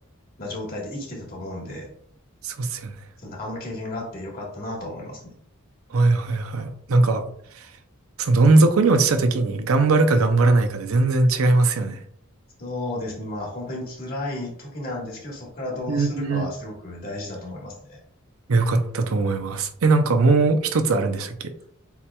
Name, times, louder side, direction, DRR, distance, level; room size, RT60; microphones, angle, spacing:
voice 1, 0.4-1.9 3.2-5.3 12.6-18.0, left 1 dB, 45° left, -2 dB, 1.3 m, -33 dB
voice 2, 2.4-2.9 5.9-7.2 8.2-12.0 15.9-16.5 18.5-21.4, right 3 dB, 75° right, 8 dB, 0.6 m, -20 dB
7.1 x 2.9 x 2.2 m, 0.65 s
head